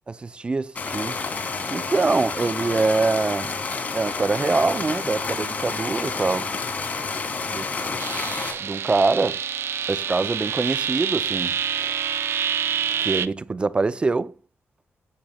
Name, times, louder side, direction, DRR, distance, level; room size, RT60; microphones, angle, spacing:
voice 1, 0.2-1.2 1.7-3.5 3.9-6.5 7.5-8.0 8.6-9.4 9.9-11.5 11.8-11.9 13.0-14.3, right 3 dB, 25° right, 0.5 m, -24 dB
sound 1, 0.8-8.5, left 4 dB, 40° left, 3.7 m, -29 dB
sound 2, 8.0-13.3, right 8 dB, 65° right, 0.6 m, -27 dB
19.0 x 7.8 x 2.3 m
wide cardioid pair, 175°, 5 cm